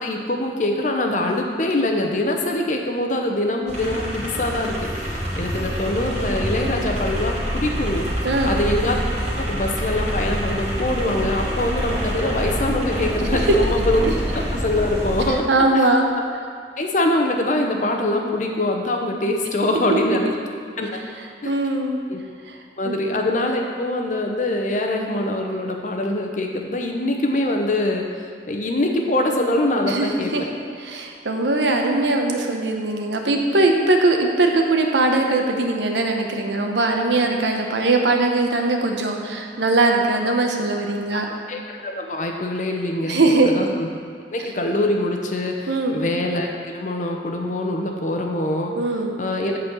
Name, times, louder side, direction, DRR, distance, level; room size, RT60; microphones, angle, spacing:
voice 1, 0.0-8.1 8.4-9.0 9.3-14.1 14.5-15.4 15.7-15.8 16.8-20.3 20.8-20.9 21.4-21.5 22.1-22.2 22.8-28.1 28.5-30.3 41.1-41.2 41.5-43.9 44.3-48.7 49.2-49.6, left 1 dB, 45° left, 2 dB, 0.8 m, -23 dB
sound 1, 3.7-15.3, equal, 40° right, 2.1 m, -26 dB
voice 2, 8.2-8.6 13.5-13.6 15.5-16.1 19.9-20.3 21.4-22.0 22.5-22.6 22.8-23.0 29.8-30.1 30.3-30.4 30.8-41.3 43.0-43.5 45.7-46.0 48.8-49.1, right 2 dB, 85° right, 2 dB, 0.9 m, -20 dB
8.2 x 4.2 x 7.0 m, 2.3 s
head